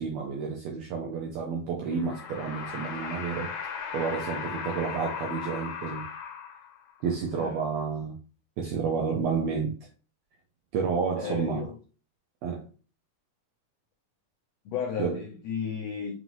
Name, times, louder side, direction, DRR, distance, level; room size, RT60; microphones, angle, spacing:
voice 1, 0.0-3.5 3.9-6.0 7.0-8.1 8.6-9.7 10.7-11.6 12.4-12.6 15.0-15.2, right 5 dB, 80° right, 1.5 m, -30 dB
sound 1, 1.9-7.0, left 7 dB, 75° left, 2.0 m, -37 dB
voice 2, 7.3-7.7 11.2-11.7 14.6-16.2, left 7 dB, 90° left, 1.4 m, -34 dB
5.5 x 2.5 x 3.0 m
omnidirectional pair, 3.7 m